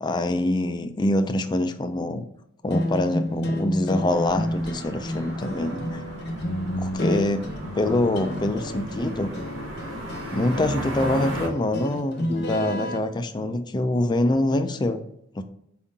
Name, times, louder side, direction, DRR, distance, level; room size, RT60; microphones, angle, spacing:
voice 1, 0.0-2.3 2.6-6.0 6.8-7.5 7.7-9.3 10.3-15.0 15.3-15.4, left 1 dB, 20° left, 9 dB, 0.3 m, -25 dB
sound 1, 2.7-13.0, equal, 55° left, 0.8 m, -31 dB
sound 2, 4.1-11.5, right 1 dB, 90° right, 0.9 m, -36 dB
4.7 x 3.7 x 2.7 m, 0.75 s
head